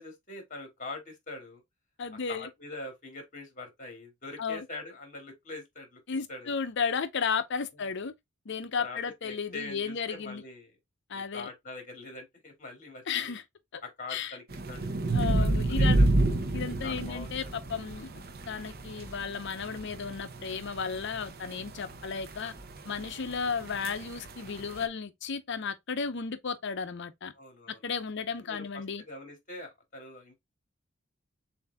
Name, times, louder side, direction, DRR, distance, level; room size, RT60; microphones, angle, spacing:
voice 1, 0.0-1.6 2.3-6.0 6.3-6.5 7.7-7.9 8.8-9.0 9.2-10.7 11.1-13.4 13.8-14.9 15.4-16.1 16.8-17.3 27.3-27.8 28.4-30.4, left 2 dB, 40° left, 2.1 m, -43 dB
voice 2, 2.0-2.5 4.4-4.6 6.1-8.1 8.5-10.4 11.1-11.5 13.1-13.4 13.7-13.8 14.1-14.4 15.1-16.1 16.5-18.1 18.5-22.5 22.9-27.3 27.8-29.0, left 5 dB, 65° left, 0.6 m, -34 dB
sound 1, 14.5-24.8, right 2 dB, 50° right, 0.7 m, -30 dB
6.9 x 2.6 x 2.2 m
head